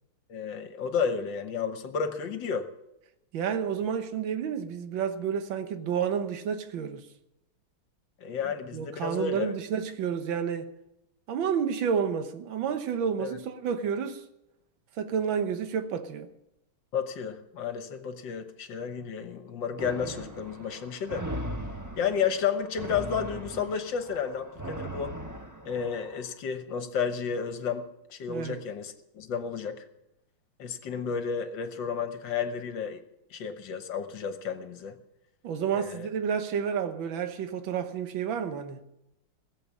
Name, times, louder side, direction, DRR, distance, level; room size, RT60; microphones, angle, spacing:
voice 1, 0.3-2.7 8.2-9.5 13.2-13.3 16.9-21.3 22.0-25.1 25.6-29.8 30.6-33.0 33.3-34.9 35.7-36.1, left 6 dB, 70° left, 1.7 m, -32 dB
voice 2, 3.3-7.0 8.7-10.7 11.3-14.2 15.0-16.3 28.3-28.6 35.4-38.8, right 7 dB, 75° right, 1.8 m, -30 dB
sound 1, 19.8-26.2, right 1 dB, 15° right, 0.7 m, -39 dB
17.5 x 7.7 x 8.5 m
omnidirectional pair, 2.2 m